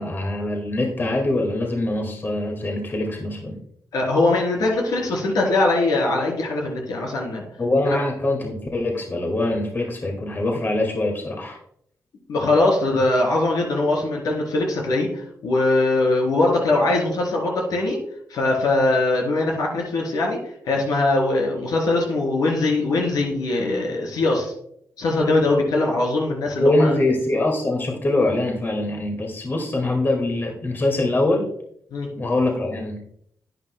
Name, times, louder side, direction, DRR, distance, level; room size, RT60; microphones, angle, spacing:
voice 1, 0.0-3.6 7.6-11.6 26.6-31.5 32.2-33.0, left 2 dB, 35° left, 1 dB, 1.8 m, -23 dB
voice 2, 3.9-7.4 7.9-8.0 12.3-18.0 18.3-20.4 20.6-24.5 25.0-26.9 31.9-32.1, left 2 dB, 80° left, 0 dB, 3.3 m, -21 dB
10.5 x 9.3 x 2.2 m, 0.69 s
cardioid pair, 90°, 6 cm